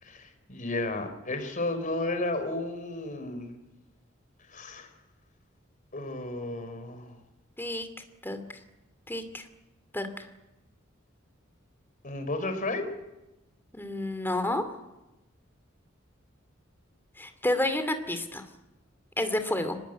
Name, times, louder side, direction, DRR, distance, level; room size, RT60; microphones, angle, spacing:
voice 1, 0.0-3.6 4.5-4.9 5.9-7.2 12.0-12.9, left 2 dB, 40° left, 7 dB, 4.1 m, -33 dB
voice 2, 7.6-7.9 8.2-8.6 9.1-9.4 9.9-10.3 13.7-14.6 17.2-18.5 19.2-19.8, left 1 dB, 10° left, 8 dB, 2.4 m, -30 dB
24.5 x 20.0 x 9.2 m, 1.0 s
head